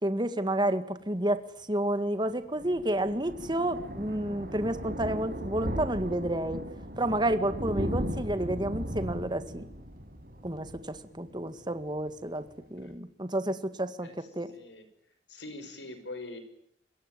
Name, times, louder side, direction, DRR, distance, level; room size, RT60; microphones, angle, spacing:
voice 1, 0.0-1.4 1.7-6.6 7.0-9.6 10.4-12.4 12.7-14.1 14.4-14.5, right 1 dB, 25° right, 10 dB, 2.0 m, -30 dB
Thunder, 2.3-11.7 12.0-12.2 12.5-12.6 12.8-12.9, equal, 55° right, 5.6 m, -37 dB
voice 2, 14.5-14.9 15.3-16.4, left 2 dB, 85° left, 10 dB, 5.7 m, -43 dB
27.5 x 22.5 x 9.2 m, 0.73 s
head